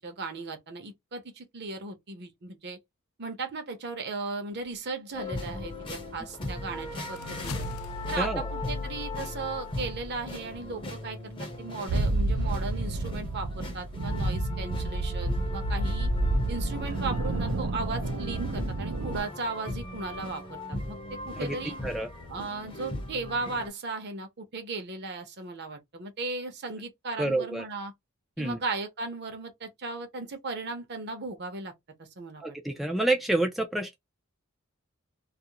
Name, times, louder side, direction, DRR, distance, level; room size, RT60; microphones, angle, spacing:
voice 1, 0.0-2.8 3.2-7.7 8.1-16.1 16.5-21.8 22.3-27.9 28.4-31.7 32.0-32.6, right 3 dB, 55° right, 0.7 m, -36 dB
sound 1, 5.1-23.7, left 1 dB, 25° left, 0.7 m, -38 dB
sound 2, 6.2-10.2, left 3 dB, 75° left, 0.3 m, -40 dB
voice 2, 8.2-8.5 21.4-21.6 21.8-22.1 27.2-27.6 28.4-28.6 32.4-34.0, right 2 dB, ahead, 0.3 m, -28 dB
sound 3, 11.9-19.2, right 2 dB, 90° right, 0.5 m, -29 dB
2.4 x 2.0 x 2.8 m
head